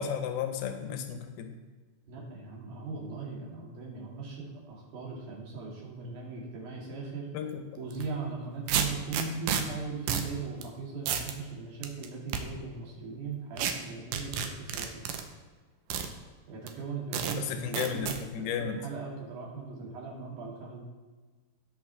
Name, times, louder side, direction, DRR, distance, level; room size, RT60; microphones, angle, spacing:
voice 1, 0.0-1.5 7.3-7.6 17.4-18.8, left 8 dB, 85° left, 7 dB, 2.8 m, -33 dB
voice 2, 2.1-7.3 7.8-15.0 16.5-20.9, right 4 dB, 55° right, -3 dB, 3.6 m, -39 dB
sound 1, 7.9-8.1 8.7-9.6 10.1-10.3 10.6-10.7 11.1-11.3 11.8-12.4 13.6-13.7 14.1-15.2 15.9-16.1 16.7-16.8 17.1-17.4 17.7-18.2, right 8 dB, 75° right, 2.1 m, -30 dB
18.0 x 6.2 x 3.4 m, 1.3 s
omnidirectional pair, 4.4 m